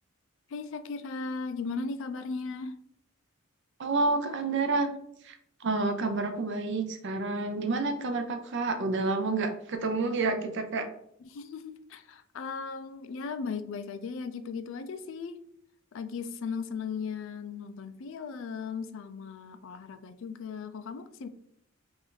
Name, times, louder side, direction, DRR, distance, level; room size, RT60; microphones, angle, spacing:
voice 1, 0.5-2.8 11.2-15.4 15.9-21.3, left 5 dB, 60° left, 10 dB, 0.3 m, -37 dB
voice 2, 3.8-4.9 5.2-5.4 5.6-10.9, right 3 dB, 55° right, 6 dB, 0.5 m, -29 dB
3.4 x 2.6 x 3.7 m, 0.70 s
head